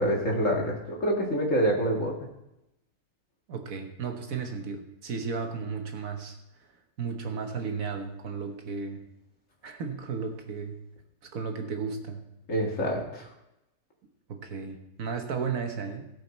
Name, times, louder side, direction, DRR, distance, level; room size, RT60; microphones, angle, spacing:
voice 1, 0.0-2.1 12.5-13.3, right 1 dB, 55° left, -1 dB, 2.3 m, -26 dB
voice 2, 3.5-6.4 7.0-9.1 9.6-10.8 11.2-12.2 14.3-16.1, right 5 dB, 65° right, 4 dB, 1.5 m, -34 dB
16.5 x 5.6 x 4.3 m, 0.88 s
omnidirectional pair, 1.6 m